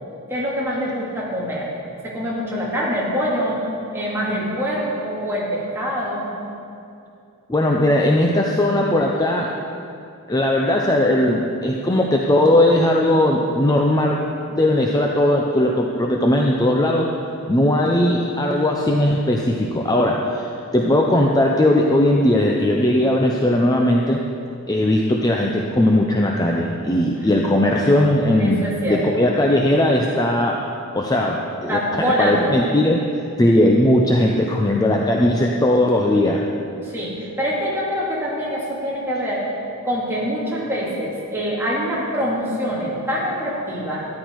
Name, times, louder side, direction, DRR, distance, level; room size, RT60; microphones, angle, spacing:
voice 1, 0.3-1.7 2.0-3.6 3.9-6.3 28.4-29.1 31.7-32.6 36.8-39.5 39.8-44.1, equal, 10° right, -7 dB, 2.7 m, -24 dB
voice 2, 7.5-9.5 10.3-14.2 14.5-17.1 17.5-24.2 24.7-30.6 30.9-33.0 33.4-36.4, left 1 dB, 15° left, 0 dB, 0.6 m, -18 dB
13.0 x 11.0 x 4.7 m, 2.5 s
head